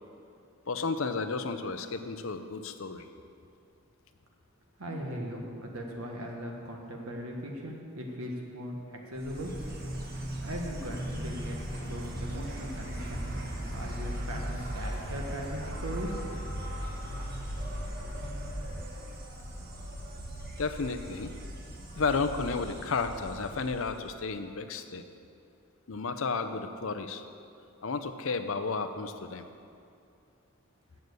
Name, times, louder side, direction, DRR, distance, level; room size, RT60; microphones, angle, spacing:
voice 1, 0.7-3.0 20.6-21.3 22.0-25.0 25.9-27.2 27.8-29.5, left 4 dB, 65° left, 9 dB, 0.6 m, -32 dB
voice 2, 4.8-9.8 10.4-11.6 11.8-13.2 13.7-16.2, equal, 80° right, 0 dB, 1.5 m, -39 dB
Insect, 9.2-24.2, equal, 45° right, 1.2 m, -38 dB
7.7 x 7.1 x 8.1 m, 2.5 s
head